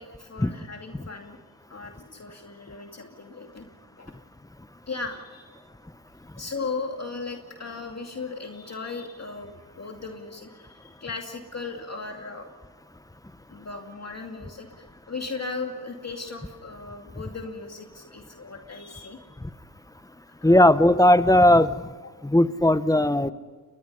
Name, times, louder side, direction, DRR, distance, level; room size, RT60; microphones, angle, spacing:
voice 1, 0.0-1.4 1.7-3.7 4.0-4.1 4.9-5.8 6.4-12.5 13.5-19.2 20.4-20.7, left 4 dB, 35° left, 3 dB, 2.5 m, -37 dB
voice 2, 20.4-21.8 22.2-23.3, left 1 dB, 10° left, 13 dB, 1.0 m, -18 dB
30.0 x 22.0 x 5.5 m, 1.4 s
cardioid pair, 70°, 47 cm